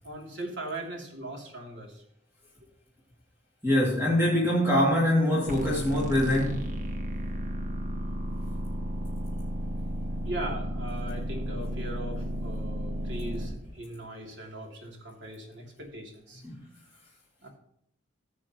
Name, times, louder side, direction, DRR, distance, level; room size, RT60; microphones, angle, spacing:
voice 1, 0.0-2.0 10.2-16.5 17.4-17.5, right 1 dB, 70° right, 0 dB, 3.0 m, -39 dB
voice 2, 3.6-6.7 16.4-16.6, left 1 dB, 10° right, -5 dB, 2.5 m, -24 dB
sound 1, 5.5-13.5, equal, 40° right, 1.4 m, -33 dB
15.0 x 8.5 x 3.0 m, 0.73 s
head